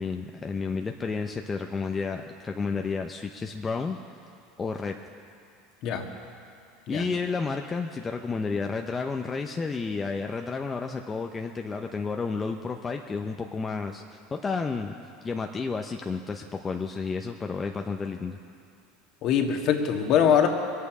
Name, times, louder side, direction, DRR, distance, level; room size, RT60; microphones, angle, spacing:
voice 1, 0.0-4.0 4.6-5.0 6.9-14.9 15.2-18.4, left 4 dB, 25° left, 3 dB, 0.8 m, -31 dB
voice 2, 19.2-20.5, left 8 dB, 55° left, 3 dB, 1.7 m, -22 dB
22.5 x 8.6 x 6.2 m, 2.5 s
hypercardioid pair, 80°, 0 cm